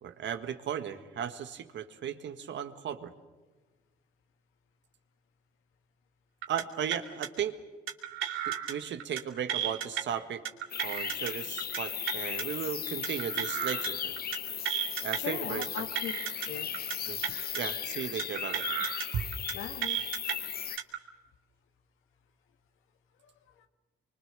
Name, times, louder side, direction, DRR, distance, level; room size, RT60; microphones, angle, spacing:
voice 1, 0.0-3.1 6.5-7.6 8.5-10.4 10.8-14.1 15.0-15.6 17.1-17.2 17.5-18.6 19.1-19.3, right 8 dB, 65° right, 9 dB, 1.7 m, -36 dB
sound 1, 6.4-6.6 6.9-7.3 7.9-8.7 9.0-9.2 9.5-10.0 10.5-11.3 11.6-11.8 12.1-12.4 13.0-13.9 14.2-14.4 14.7-15.2 15.6-16.5 16.7-17.0 17.2-17.6 18.2-19.1 19.3-19.5 19.8-20.3 20.8-21.0, right 10 dB, 85° right, 2.6 m, -33 dB
sound 2, 10.7-20.8, left 9 dB, 50° left, 0.8 m, -36 dB
voice 2, 15.1-16.1 16.5-16.7 19.5-20.0 23.2-23.7, left 8 dB, 90° left, 7 dB, 1.8 m, -39 dB
25.5 x 23.5 x 6.8 m, 1.3 s
cardioid pair, 90°, 20 cm